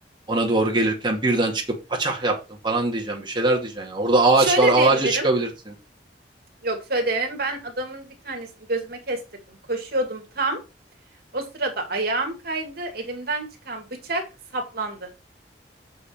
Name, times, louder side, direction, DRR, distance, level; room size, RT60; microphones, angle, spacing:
voice 1, 0.3-1.6 1.9-2.4 2.6-5.7, right 2 dB, 25° right, 0 dB, 2.2 m, -21 dB
voice 2, 4.4-5.3 6.6-9.2 9.5-10.6 11.3-14.2 14.5-15.1, right 2 dB, 60° right, 3 dB, 2.4 m, -27 dB
7.4 x 6.3 x 4.6 m, 0.27 s
head